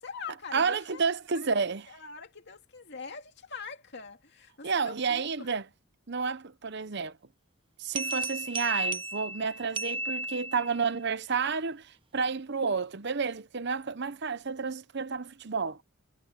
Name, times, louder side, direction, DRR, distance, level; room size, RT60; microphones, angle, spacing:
voice 1, 0.0-1.1 1.3-1.5 1.9-5.5, left 5 dB, 50° left, 2.5 m, -43 dB
voice 2, 0.5-1.9 4.6-5.6 6.1-7.1 7.8-11.9 12.1-15.8, right 5 dB, 50° right, 0.8 m, -30 dB
sound 1, 8.0-10.9, right 2 dB, 25° right, 0.9 m, -34 dB
head